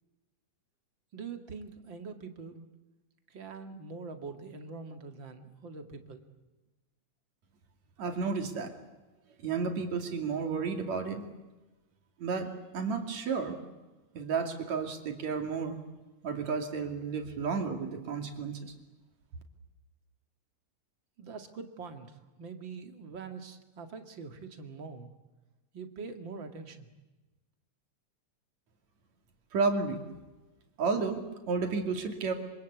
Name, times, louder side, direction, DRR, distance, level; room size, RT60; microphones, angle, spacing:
voice 1, 1.1-2.7 3.3-6.2 21.2-25.1 25.7-26.9, right 4 dB, 45° right, 6 dB, 2.5 m, -44 dB
voice 2, 8.0-8.8 9.4-11.3 12.2-13.6 14.1-15.8 16.2-18.7 29.5-30.0 30.8-32.3, right 5 dB, 70° right, 4 dB, 3.8 m, -32 dB
26.0 x 26.0 x 8.4 m, 1.1 s
omnidirectional pair, 3.3 m